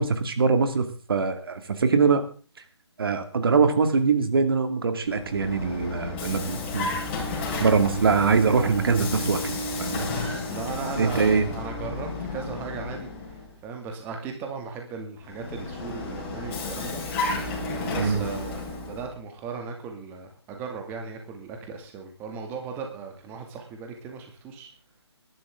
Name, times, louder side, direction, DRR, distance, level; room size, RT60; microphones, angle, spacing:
voice 1, 0.0-2.2 3.0-6.9 7.6-10.1 11.0-11.4 18.0-18.3, right 5 dB, 55° right, 8 dB, 2.3 m, -23 dB
Vehicle, 5.0-13.5 15.2-19.1, left 2 dB, 25° left, 5.2 m, -32 dB
voice 2, 10.5-17.0 17.7-24.7, right 5 dB, 15° right, 3 dB, 2.3 m, -37 dB
21.5 x 12.0 x 3.7 m, 0.38 s
figure-of-eight pair, 155°, 14 cm